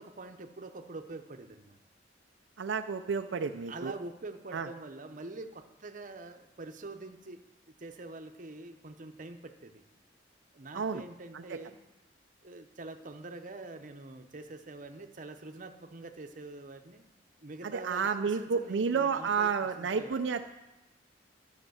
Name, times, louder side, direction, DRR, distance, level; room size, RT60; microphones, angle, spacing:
voice 1, 0.0-1.8 3.7-7.4 7.7-9.8 10.5-11.8 12.4-17.0 17.4-19.5 19.8-20.2, right 2 dB, 45° right, 6 dB, 0.8 m, -45 dB
voice 2, 2.6-3.9 4.5-4.7 10.7-11.0 11.3-11.6 17.6-20.5, right 5 dB, 80° right, 7 dB, 0.5 m, -31 dB
12.0 x 7.3 x 6.3 m, 1.0 s
head